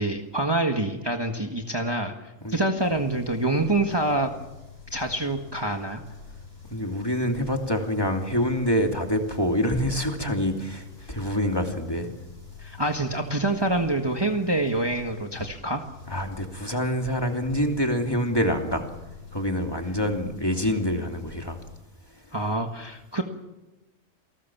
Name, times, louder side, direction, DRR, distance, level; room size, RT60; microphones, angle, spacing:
voice 1, 0.0-2.1 2.5-4.3 4.9-6.0 12.6-15.8 22.3-23.2, right 2 dB, 20° right, 4 dB, 1.7 m, -26 dB
sound 1, 2.8-21.8, left 5 dB, 75° left, 8.4 m, -46 dB
voice 2, 6.7-12.1 16.1-18.9 19.3-21.6, equal, 20° left, 3 dB, 2.8 m, -26 dB
28.5 x 20.0 x 7.3 m, 1.0 s
omnidirectional pair, 1.3 m